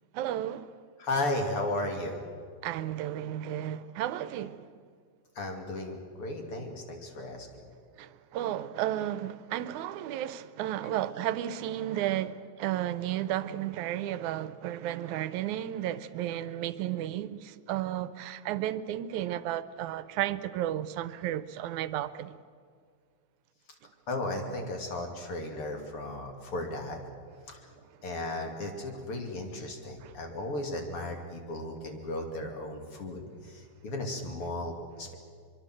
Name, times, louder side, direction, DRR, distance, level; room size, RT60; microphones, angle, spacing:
voice 1, 0.1-0.7 2.6-4.7 8.0-22.4 30.0-30.1, right 12 dB, 85° right, 2.2 m, -33 dB
voice 2, 1.0-2.2 5.3-7.5 24.1-27.0 27.5-27.6 28.0-34.7 35.0-35.1, left 2 dB, 50° left, 3.4 m, -35 dB
23.5 x 23.5 x 7.6 m
omnidirectional pair, 3.3 m